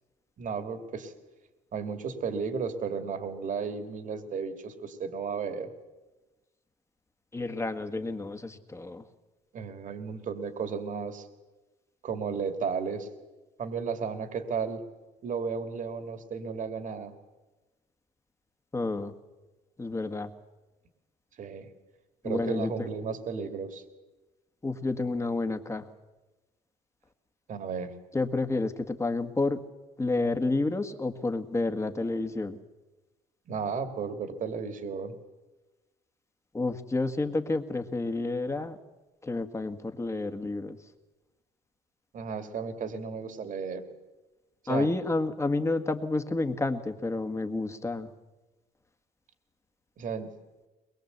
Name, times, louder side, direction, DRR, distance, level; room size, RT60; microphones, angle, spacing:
voice 1, 0.4-1.1 1.7-5.7 9.5-11.3 12.0-13.1 13.6-14.8 15.2-17.2 21.4-21.7 22.2-23.8 27.5-27.9 33.5-35.2 42.1-43.9 44.6-44.9 50.0-50.3, right 5 dB, 50° right, 8 dB, 2.4 m, -34 dB
voice 2, 7.3-9.0 18.7-19.1 19.8-20.3 22.2-22.9 24.6-25.9 28.1-29.6 30.0-32.6 36.5-38.8 39.2-40.8 44.7-48.1, left 2 dB, 15° left, 7 dB, 1.7 m, -30 dB
22.0 x 21.5 x 8.1 m, 1.1 s
cardioid pair, 110°, 17 cm